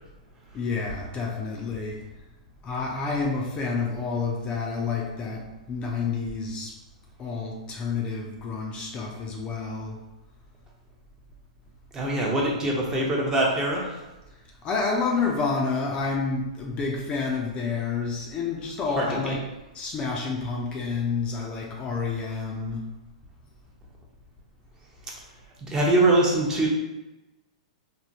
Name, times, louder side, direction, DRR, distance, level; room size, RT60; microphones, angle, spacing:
voice 1, 0.5-2.0 2.6-6.7 7.2-10.0 14.6-22.9, left 4 dB, 30° left, -1 dB, 0.5 m, -29 dB
voice 2, 11.9-14.0 19.0-19.4 25.6-26.7, right 2 dB, 20° right, -2 dB, 0.7 m, -23 dB
3.4 x 2.2 x 2.7 m, 1.0 s
hypercardioid pair, 115°, 4 cm